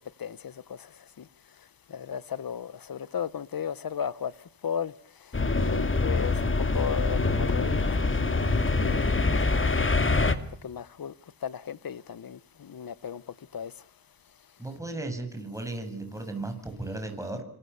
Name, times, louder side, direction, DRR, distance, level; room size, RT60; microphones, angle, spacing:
voice 1, 0.2-1.3 1.9-4.3 4.6-4.9 5.2-8.6 8.8-10.0 10.6-11.1 11.4-13.2 13.5-13.7, left 7 dB, 50° left, 1.1 m, -35 dB
sound 1, 5.3-10.4, left 3 dB, 25° left, 2.3 m, -25 dB
voice 2, 14.6-17.4, right 2 dB, 5° right, 7.5 m, -35 dB
29.0 x 26.0 x 7.1 m
wide cardioid pair, 115°, 46 cm